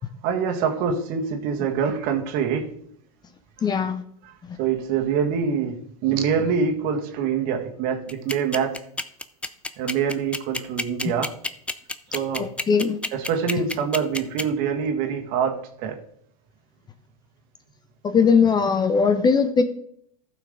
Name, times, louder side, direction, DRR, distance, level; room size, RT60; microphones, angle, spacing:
voice 1, 0.2-2.7 4.2-4.3 4.6-8.8 9.8-11.3 12.1-12.5 13.1-16.0, right 6 dB, 50° right, 4 dB, 1.8 m, -25 dB
voice 2, 3.6-4.0 4.5-4.6 11.0-11.1 12.4-13.0 18.0-19.6, left 5 dB, 20° left, 10 dB, 0.9 m, -20 dB
sound 1, 8.1-14.4, left 2 dB, 5° left, 0.5 m, -28 dB
14.0 x 6.0 x 3.8 m, 0.67 s
hypercardioid pair, 105°, 19 cm